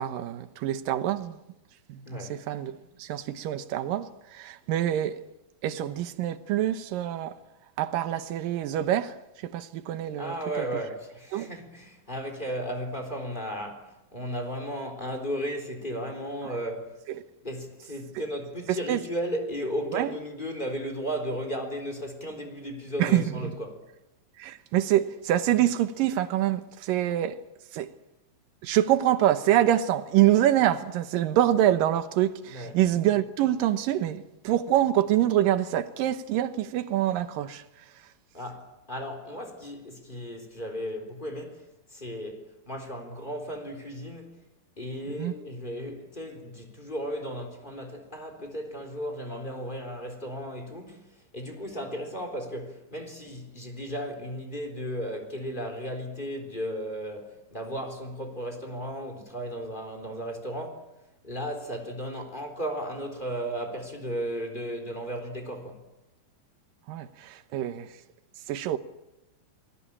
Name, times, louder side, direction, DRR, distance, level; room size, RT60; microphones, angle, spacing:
voice 1, 0.0-1.4 1.9-5.2 5.6-7.4 7.8-9.2 9.4-10.7 11.3-11.5 18.9-19.0 19.9-20.1 23.0-23.6 24.4-27.4 27.7-27.9 28.6-37.6 45.2-45.3 66.9-67.9 68.5-68.8, right 12 dB, 70° right, 2.7 m, -25 dB
voice 2, 2.1-2.4 10.2-17.0 17.4-23.9 32.5-32.8 38.3-41.6 41.9-44.4 44.8-60.9 61.2-65.8, equal, 15° left, 3.6 m, -35 dB
28.0 x 21.0 x 8.7 m
omnidirectional pair, 4.2 m